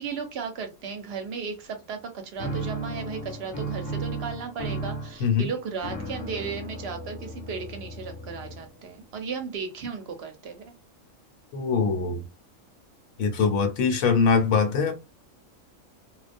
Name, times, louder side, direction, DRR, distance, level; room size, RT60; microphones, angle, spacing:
voice 1, 0.0-10.7, right 5 dB, 60° right, 0.7 m, -35 dB
sound 1, 2.4-8.9, right 2 dB, 25° left, 0.8 m, -35 dB
voice 2, 11.5-12.2 13.2-14.9, left 5 dB, 80° left, 1.1 m, -22 dB
2.3 x 2.2 x 2.5 m
omnidirectional pair, 1.4 m